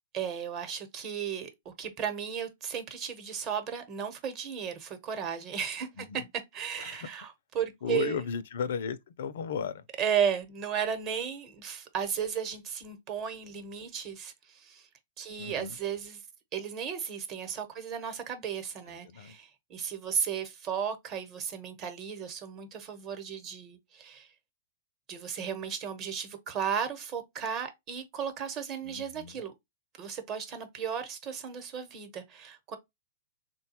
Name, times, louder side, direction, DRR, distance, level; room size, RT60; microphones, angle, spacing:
voice 1, 0.1-6.2 6.5-8.2 10.0-14.9 15.2-16.2 16.5-24.3 25.1-29.5 30.0-32.8, right 7 dB, 35° right, 0.9 m, -34 dB
voice 2, 7.8-9.8 15.4-15.8 18.9-19.4 28.8-29.4, left 7 dB, 70° left, 0.4 m, -35 dB
3.8 x 2.2 x 2.8 m
hypercardioid pair, 130°, 0 cm